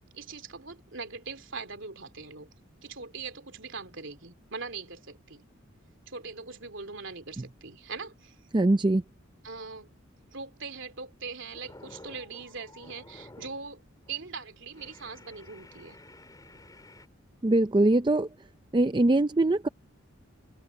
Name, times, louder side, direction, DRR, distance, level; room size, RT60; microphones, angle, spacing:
voice 1, 0.1-2.5 2.8-5.4 6.1-8.3 9.4-9.9 10.3-13.8 14.1-16.0, right 4 dB, 65° right, 3.2 m, -41 dB
voice 2, 8.5-9.0 17.4-18.3 18.7-19.7, right 2 dB, 20° right, 0.5 m, -22 dB
sound 1, 10.6-10.9 11.3-13.7 14.0-14.3 14.7-17.1, left 1 dB, 20° left, 5.0 m, -52 dB
open air
head